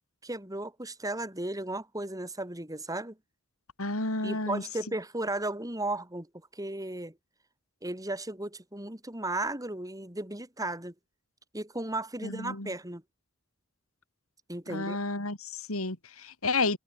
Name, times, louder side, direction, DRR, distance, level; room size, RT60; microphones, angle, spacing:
voice 1, 0.2-3.2 4.2-6.3 6.5-7.1 7.8-10.9 11.5-13.0 14.5-15.0, right 2 dB, 15° right, 4.6 m, -35 dB
voice 2, 3.8-4.6 12.2-12.7 14.7-16.8, left 3 dB, 80° left, 4.4 m, -31 dB
head